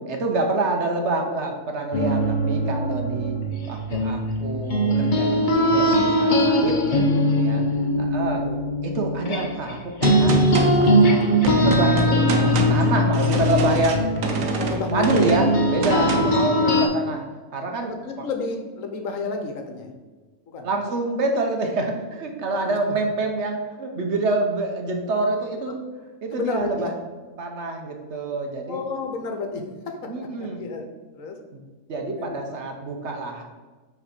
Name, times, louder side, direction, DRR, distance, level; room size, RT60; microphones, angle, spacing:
voice 1, 0.1-3.4 3.7-7.6 8.0-8.4 8.8-10.4 10.8-14.1 14.9-17.2 17.5-18.3 20.6-25.8 26.2-26.9 27.4-28.8 30.1-30.6 31.9-33.4, right 2 dB, 55° right, 3 dB, 1.1 m, -27 dB
sound 1, 1.9-9.7 10.0-16.9, equal, 40° left, 0.8 m, -21 dB
Gunshot gunfire, 10.0-16.5, right 3 dB, 85° right, 1.2 m, -27 dB
voice 2, 14.6-15.4 15.9-16.5 17.8-19.9 20.5-20.7 22.5-22.9 26.3-26.9 28.7-30.0 30.2-30.8 31.1-31.4 32.2-32.4 32.6-32.9, left 4 dB, 70° left, 4 dB, 1.2 m, -31 dB
6.2 x 3.5 x 5.8 m, 1.3 s
omnidirectional pair, 1.5 m